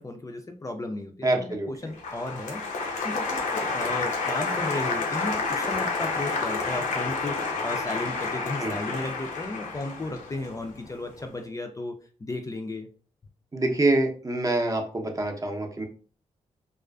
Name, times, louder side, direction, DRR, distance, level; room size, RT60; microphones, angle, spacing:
voice 1, 0.0-11.9 12.2-12.9, left 2 dB, 25° left, 4 dB, 0.4 m, -35 dB
voice 2, 1.2-1.7 8.6-8.8 13.5-15.9, right 2 dB, 25° right, 3 dB, 0.6 m, -25 dB
Applause, 2.0-11.1, left 4 dB, 75° left, 0.5 m, -30 dB
2.4 x 2.3 x 2.3 m, 0.41 s
supercardioid pair, 50°, 13 cm